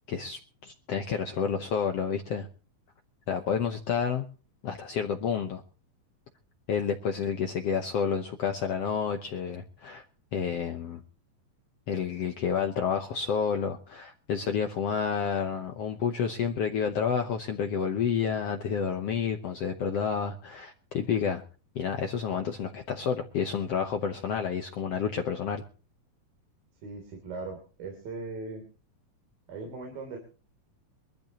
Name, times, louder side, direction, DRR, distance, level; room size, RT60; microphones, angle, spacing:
voice 1, 0.1-2.5 3.3-4.3 4.6-5.6 6.7-10.0 10.3-11.0 11.9-21.4 21.7-25.6, left 7 dB, 75° left, 5 dB, 1.4 m, -30 dB
voice 2, 26.8-28.6 29.5-30.2, right 3 dB, 70° right, 3 dB, 4.9 m, -39 dB
23.0 x 13.5 x 2.9 m, 0.37 s
omnidirectional pair, 4.2 m